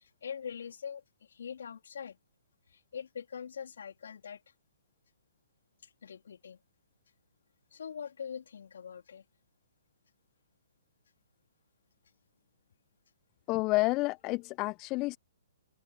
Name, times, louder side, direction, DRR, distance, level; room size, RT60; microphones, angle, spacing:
voice 1, 0.0-2.2 2.7-4.4 5.8-6.6 7.7-9.2, left 7 dB, 65° left, 3.2 m, -43 dB
voice 2, 13.5-15.2, left 23 dB, 30° left, 0.5 m, -29 dB
open air
figure-of-eight pair, 125°, 0 cm